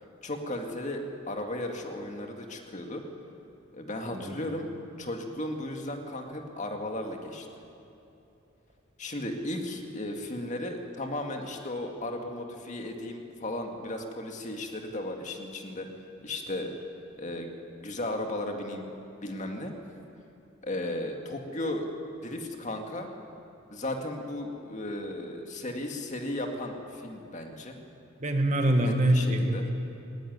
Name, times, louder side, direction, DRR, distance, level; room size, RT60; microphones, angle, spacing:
voice 1, 0.2-3.0 3.7-4.7 5.0-7.5 9.0-15.9 16.2-16.7 17.2-17.5 17.8-18.9 19.2-19.7 20.6-21.9 22.2-23.1 23.7-27.8 28.8-29.6, left 1 dB, 35° left, 3 dB, 2.1 m, -35 dB
voice 2, 28.2-29.7, right 1 dB, 35° right, 4 dB, 1.6 m, -25 dB
19.0 x 17.5 x 9.7 m, 2.9 s
head